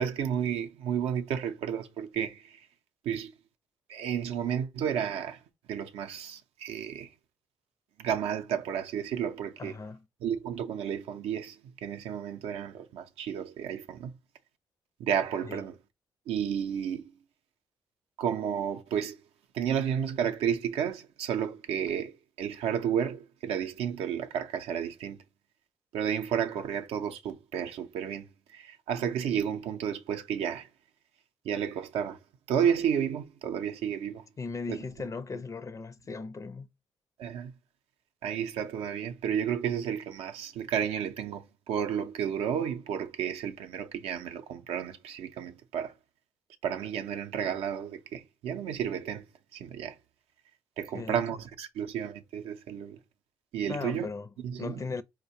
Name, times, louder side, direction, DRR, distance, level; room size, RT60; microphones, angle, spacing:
voice 1, 0.0-2.6 3.0-3.3 3.9-5.4 5.7-7.1 8.0-9.8 10.2-14.1 15.0-15.8 16.3-17.0 18.2-19.2 19.5-25.2 25.9-30.7 31.4-32.2 32.5-34.2 34.7-34.8 37.2-37.5 38.2-45.9 46.6-49.2 49.5-50.0 50.8-53.0 53.5-54.1 54.4-54.8, right 8 dB, 75° right, 0.5 m, -32 dB
voice 2, 9.6-10.0 15.4-15.6 34.4-36.7 50.9-51.2 53.7-54.3 54.6-55.0, left 4 dB, 30° left, 0.5 m, -37 dB
4.3 x 2.2 x 2.7 m
supercardioid pair, 50°, 10 cm